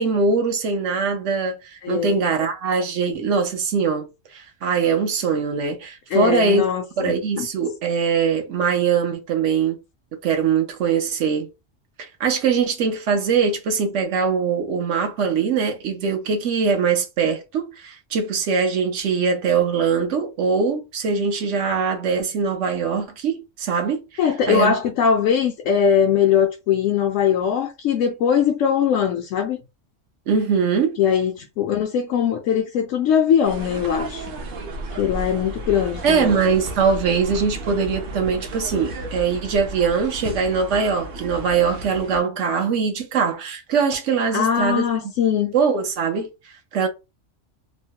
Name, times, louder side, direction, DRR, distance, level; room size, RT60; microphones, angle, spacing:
voice 1, 0.0-6.6 7.0-9.8 10.2-11.5 12.2-24.8 30.3-31.0 36.0-44.9 45.5-46.3 46.7-46.9, right 5 dB, 75° right, 1.0 m, -22 dB
voice 2, 1.8-2.2 6.1-7.5 24.2-29.6 31.0-34.3 35.0-36.4 44.3-45.5, left 8 dB, 90° left, 1.0 m, -21 dB
sound 1, 33.4-42.2, right 1 dB, 55° right, 0.7 m, -33 dB
3.1 x 2.1 x 2.8 m
omnidirectional pair, 1.3 m